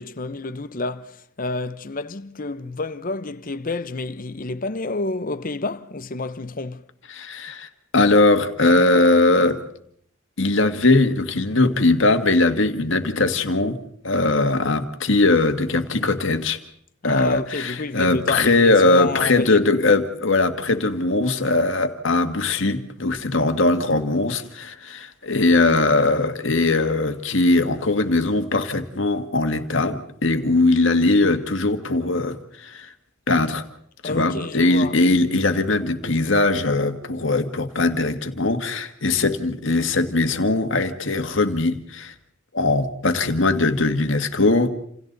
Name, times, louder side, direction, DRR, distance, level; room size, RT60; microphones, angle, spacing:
voice 1, 0.0-6.9 17.0-19.6 34.0-35.0, left 3 dB, 40° left, 0.9 m, -29 dB
voice 2, 7.1-9.6 10.4-16.6 17.0-32.9 33.3-33.6 34.0-42.1 42.5-44.7, left 2 dB, 65° left, 1.8 m, -20 dB
28.5 x 28.5 x 4.1 m
head